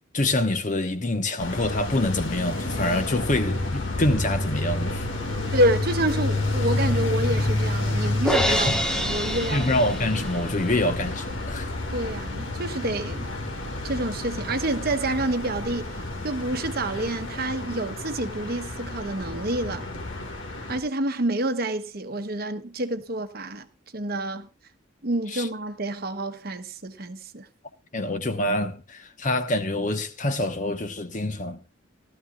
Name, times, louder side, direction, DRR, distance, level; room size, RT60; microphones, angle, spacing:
voice 1, 0.1-5.0 8.5-8.6 9.5-11.7 25.3-25.5 27.9-31.6, left 1 dB, 40° left, 1.0 m, -26 dB
sound 1, 1.4-20.8, left 2 dB, 70° left, 1.9 m, -30 dB
voice 2, 5.5-9.7 11.9-13.3 13.8-19.8 20.7-23.7 23.9-24.5 25.0-27.5, right 1 dB, 50° right, 1.0 m, -28 dB
Crash cymbal, 8.3-10.5, left 1 dB, 5° left, 0.7 m, -27 dB
17.5 x 13.0 x 2.4 m
head